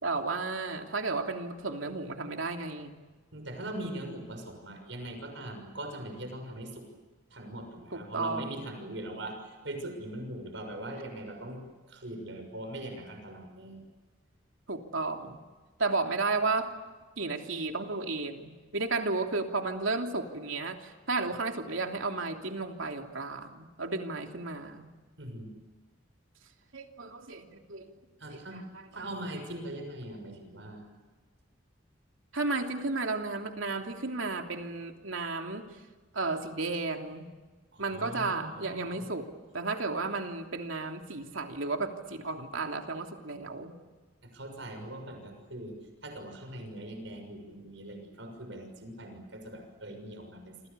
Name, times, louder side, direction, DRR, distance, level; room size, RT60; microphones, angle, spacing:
voice 1, 0.0-2.9 7.9-8.8 14.7-15.4 15.8-16.7 17.2-24.9 26.7-27.9 28.3-29.1 32.3-35.6 36.1-37.3 37.8-39.2 39.5-43.7, right 3 dB, 85° right, 3 dB, 3.1 m, -33 dB
voice 2, 3.3-6.8 7.3-11.6 11.9-13.8 25.2-25.5 28.2-28.6 28.9-30.8 37.7-39.0 44.3-45.8 46.0-50.7, right 1 dB, 70° right, 4 dB, 6.4 m, -41 dB
28.0 x 27.5 x 7.0 m, 1.3 s
head